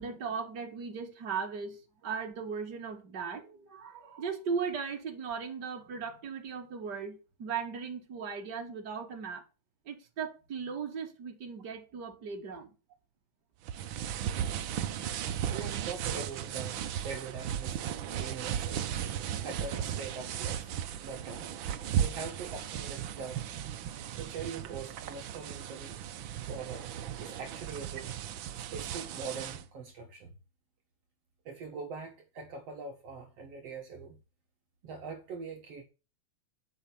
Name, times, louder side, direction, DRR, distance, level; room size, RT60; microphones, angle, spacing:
voice 1, 0.0-9.4 9.9-12.7, right 6 dB, 40° right, 2.5 m, -37 dB
sound 1, 13.6-29.6, right 9 dB, 80° right, 1.1 m, -36 dB
voice 2, 15.5-17.8 18.2-18.8 19.4-20.7 21.0-21.5 22.0-23.4 24.1-26.0 26.5-26.9 27.2-28.2 28.6-30.3 31.5-34.2 34.8-35.8, right 5 dB, 60° right, 2.5 m, -42 dB
10.0 x 5.9 x 6.9 m
omnidirectional pair, 3.3 m